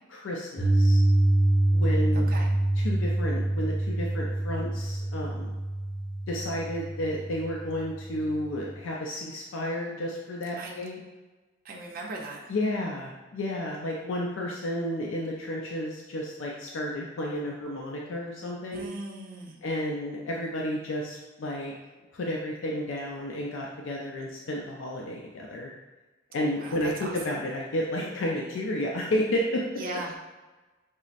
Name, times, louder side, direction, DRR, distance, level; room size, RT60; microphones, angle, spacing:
voice 1, 0.1-1.0 1.7-2.3 2.8-5.5 6.3-11.0 12.5-18.9 19.6-21.7 22.1-25.7 26.3-29.6, left 1 dB, 80° left, -2 dB, 0.5 m, -32 dB
Piano, 0.6-8.7, right 1 dB, 40° left, 1.4 m, -26 dB
voice 2, 2.1-2.5 10.6-10.8 11.6-12.4 18.7-19.6 26.6-27.1 29.7-30.2, right 2 dB, 50° right, -1 dB, 0.6 m, -38 dB
5.4 x 2.0 x 2.4 m, 1.2 s
head